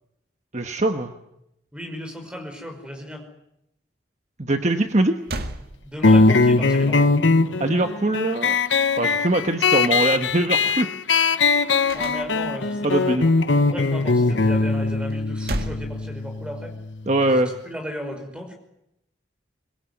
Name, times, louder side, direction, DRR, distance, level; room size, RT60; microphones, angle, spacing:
voice 1, 0.5-1.1 4.4-5.2 7.6-8.6 9.0-10.9 12.8-13.3 17.1-17.5, right 2 dB, 40° right, 6 dB, 1.2 m, -22 dB
voice 2, 1.7-3.3 5.8-7.1 11.9-13.3 13.6-16.8 17.2-18.6, equal, 5° right, 4 dB, 5.2 m, -35 dB
sound 1, 4.8-4.9 5.2-6.4 11.9-12.7 15.1-16.7, right 1 dB, 55° right, 1.9 m, -33 dB
sound 2, 6.0-17.1, left 3 dB, 90° left, 1.1 m, -21 dB
23.5 x 22.5 x 9.6 m, 0.83 s
head